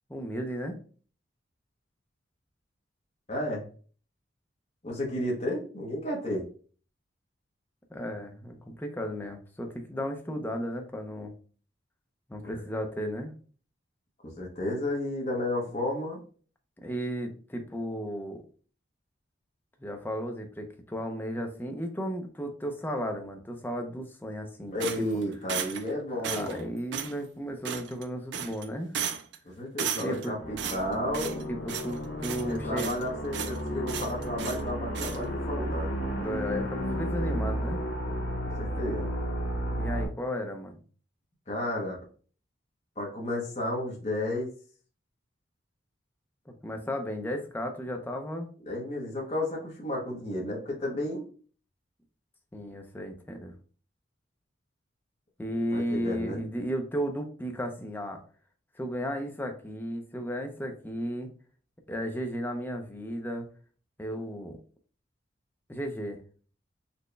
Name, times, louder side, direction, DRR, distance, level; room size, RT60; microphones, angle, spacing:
voice 1, 0.1-0.8 7.9-11.3 12.3-13.3 16.8-18.4 19.8-25.1 26.3-29.0 30.0-30.3 31.5-32.9 36.2-37.8 39.8-40.8 46.5-48.5 52.5-53.5 55.4-58.2 58.8-61.3 61.9-63.5 64.0-64.6 65.7-66.2, equal, 10° left, 3 dB, 0.5 m, -34 dB
voice 2, 3.3-3.6 4.8-6.4 12.4-12.6 14.2-16.2 24.7-26.7 29.4-31.5 32.5-35.9 38.6-39.1 41.5-42.0 43.0-44.5 48.7-51.3 55.7-56.4, left 1 dB, 35° left, -2 dB, 0.8 m, -32 dB
sound 1, 24.8-25.9 26.2-26.6 26.9-27.1 27.6-28.0 28.3-28.7 28.9-29.4 29.8-30.3 30.6-31.4 31.7-31.9 32.2-33.0 33.3-33.6 33.9-34.6 34.9-35.2, right 7 dB, 65° right, 0.4 m, -34 dB
sound 2, 30.4-40.1, equal, 70° left, 1.0 m, -33 dB
4.1 x 2.1 x 3.2 m, 0.42 s
head